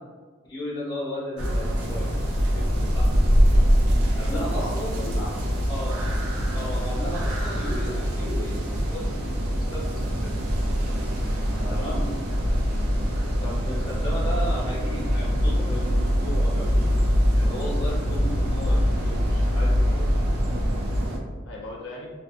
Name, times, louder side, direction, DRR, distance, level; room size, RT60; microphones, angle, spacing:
voice 1, 0.5-2.1 2.5-3.6 4.1-5.0 5.7-6.0 6.5-10.3 11.7-12.1 13.4-17.0 17.3-20.1, left 1 dB, 20° left, -8 dB, 0.8 m, -35 dB
sound 1, 1.4-21.2, equal, 85° right, 0.5 m, -23 dB
voice 2, 4.3-5.4 11.5-11.8 21.4-22.1, left 1 dB, 55° left, -2 dB, 0.5 m, -36 dB
2.5 x 2.3 x 2.4 m, 1.5 s
head